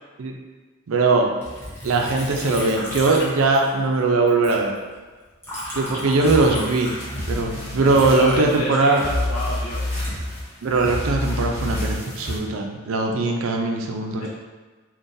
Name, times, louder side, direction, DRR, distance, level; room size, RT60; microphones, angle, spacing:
voice 1, 0.9-1.3 1.8-4.7 5.7-6.9 7.3-9.0 10.6-14.3, right 3 dB, 80° right, 2 dB, 0.4 m, -20 dB
Liquid, 1.4-4.0 4.3-7.5 7.9-10.9 11.5-12.0, equal, 10° left, 0.7 m, -35 dB
sound 1, 6.2-12.4, left 1 dB, 50° left, 0.8 m, -29 dB
voice 2, 7.7-9.9 14.2-14.3, equal, 80° left, -4 dB, 0.8 m, -30 dB
3.8 x 2.2 x 2.6 m, 1.3 s
head